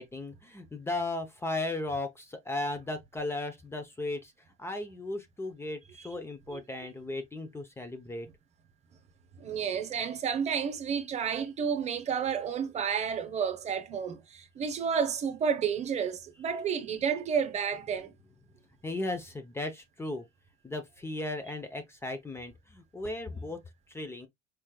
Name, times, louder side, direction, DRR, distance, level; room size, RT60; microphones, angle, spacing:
voice 1, 0.0-4.3 4.6-8.3 18.8-20.2 20.6-23.6 23.9-24.3, left 2 dB, 15° left, 0.6 m, -36 dB
voice 2, 9.4-18.1, right 7 dB, 40° right, 0.9 m, -31 dB
4.6 x 3.1 x 2.2 m
supercardioid pair, 95°, 18 cm